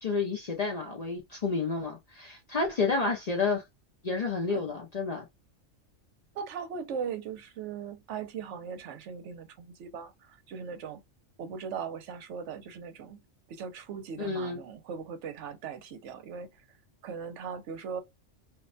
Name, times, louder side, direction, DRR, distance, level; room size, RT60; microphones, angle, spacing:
voice 1, 0.0-3.6 4.0-5.3 14.2-14.6, left 4 dB, 60° left, 0.4 m, -30 dB
voice 2, 6.3-11.0 11.4-13.2 13.5-16.6 17.0-18.0, right 6 dB, 70° right, 0.9 m, -39 dB
2.5 x 2.1 x 2.4 m
omnidirectional pair, 1.3 m